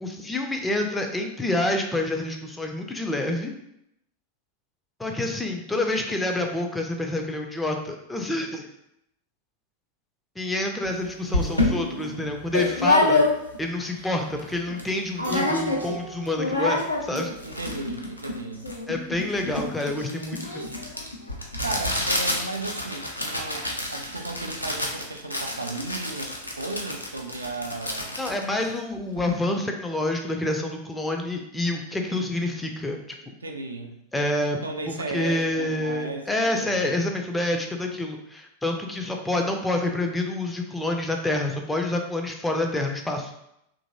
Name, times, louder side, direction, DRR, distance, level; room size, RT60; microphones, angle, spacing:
voice 1, 0.0-3.5 5.0-8.7 10.4-13.2 13.6-17.3 18.9-20.7 28.2-33.0 34.1-34.6 34.9-43.3, left 2 dB, 10° left, 3 dB, 0.4 m, -28 dB
sound 1, 10.8-10.9 11.3-13.7 14.1-14.2 14.4-14.9 15.2-16.0 16.2-29.3, left 2 dB, 85° left, 0.4 m, -27 dB
voice 2, 11.3-12.4 17.4-18.7 21.6-28.2 32.0-32.4 33.4-34.0 34.6-37.0, right 2 dB, 75° right, 4 dB, 0.3 m, -35 dB
Keyboard (musical), 15.2-17.9, right 3 dB, 70° left, 1.1 m, -39 dB
2.8 x 2.6 x 2.6 m, 0.79 s
figure-of-eight pair, 90°, 0 cm